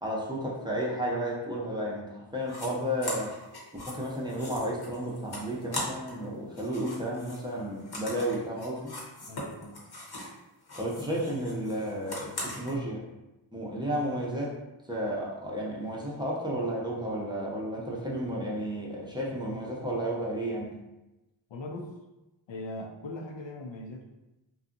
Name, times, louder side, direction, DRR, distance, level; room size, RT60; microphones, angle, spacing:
voice 1, 0.0-3.3 3.9-8.9 10.8-13.0 13.5-14.6 14.9-20.8, equal, 10° right, -5 dB, 0.6 m, -32 dB
sound 1, 2.4-2.7 3.0-6.2 6.5-10.4 10.6-12.7, left 1 dB, 50° left, 0.9 m, -40 dB
voice 2, 9.3-9.9 21.5-21.9 22.5-24.1, left 2 dB, 65° left, 2 dB, 0.5 m, -40 dB
2.6 x 2.3 x 2.5 m, 0.99 s
cardioid pair, 55°, 49 cm